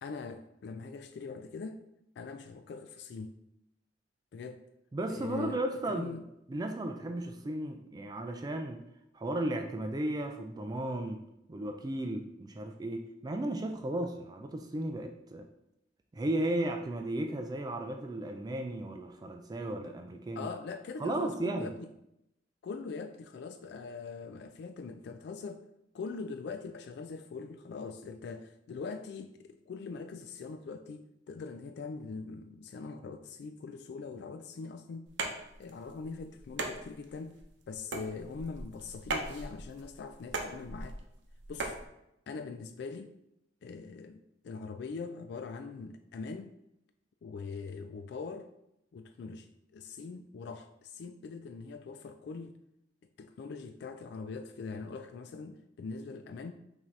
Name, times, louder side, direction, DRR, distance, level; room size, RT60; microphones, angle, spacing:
voice 1, 0.0-1.8 2.2-3.4 4.3-4.6 5.1-6.2 20.4-21.9 22.6-25.6 25.9-35.1 35.6-37.4 37.7-41.0 41.5-41.8 42.3-43.1 43.6-46.5 47.2-48.5 48.9-49.5 49.7-52.6 53.2-56.5, left 4 dB, 65° left, 8 dB, 0.3 m, -42 dB
voice 2, 4.9-6.2 6.5-8.8 9.1-11.2 11.5-15.5 16.1-20.5 21.0-21.7, right 1 dB, 20° right, 4 dB, 0.3 m, -35 dB
sound 1, 35.1-41.8, right 2 dB, 75° right, 0.7 m, -39 dB
5.8 x 2.7 x 3.1 m, 0.82 s
head